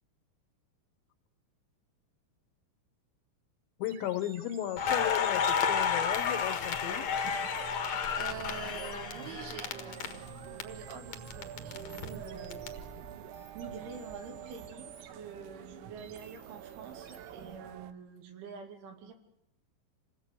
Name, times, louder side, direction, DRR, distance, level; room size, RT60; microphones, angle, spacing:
voice 1, 3.8-7.1, left 12 dB, 75° left, 11 dB, 3.0 m, -35 dB
sound 1, 3.8-17.6, right 7 dB, 55° right, 2.7 m, -52 dB
Crackle, 4.8-10.6 10.9-12.7, left 7 dB, 60° left, 1.9 m, -31 dB
sound 2, 6.8-17.9, right 10 dB, 90° right, 3.8 m, -47 dB
voice 2, 8.2-10.2 10.4-12.7 13.5-19.1, right 6 dB, 70° right, 4 dB, 5.0 m, -46 dB
27.5 x 19.0 x 8.4 m, 0.84 s
omnidirectional pair, 5.8 m